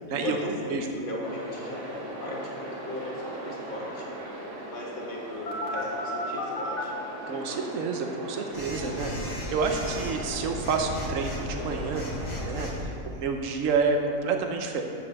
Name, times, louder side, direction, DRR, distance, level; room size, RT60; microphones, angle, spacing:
voice 1, 0.1-4.1 4.7-7.0 9.2-9.5, left 1 dB, 40° left, -3 dB, 1.9 m, -37 dB
sound 1, 1.2-12.8, right 1 dB, 45° right, 1.6 m, -40 dB
Telephone, 5.5-6.8 8.5-12.9, left 1 dB, 55° left, 1.9 m, -35 dB
voice 2, 7.3-12.0 12.4-12.7 13.0-14.8, right 4 dB, 70° right, 4 dB, 1.2 m, -29 dB
8.2 x 7.6 x 6.6 m, 2.7 s
omnidirectional pair, 1.4 m